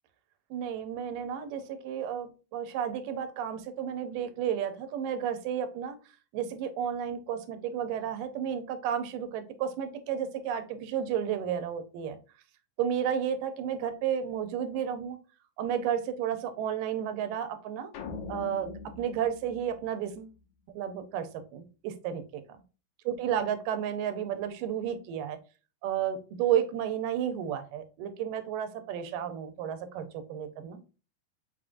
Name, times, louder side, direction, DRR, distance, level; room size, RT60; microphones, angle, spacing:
voice 1, 0.5-6.0 6.3-12.2 12.8-15.2 15.6-17.9 18.3-20.3 20.8-22.4 23.1-25.4 25.8-30.8, right 9 dB, 85° right, 8 dB, 2.4 m, -32 dB
sound 1, 17.9-20.4, left 4 dB, 85° left, 1.3 m, -42 dB
5.5 x 3.6 x 2.5 m, 0.33 s
omnidirectional pair, 3.8 m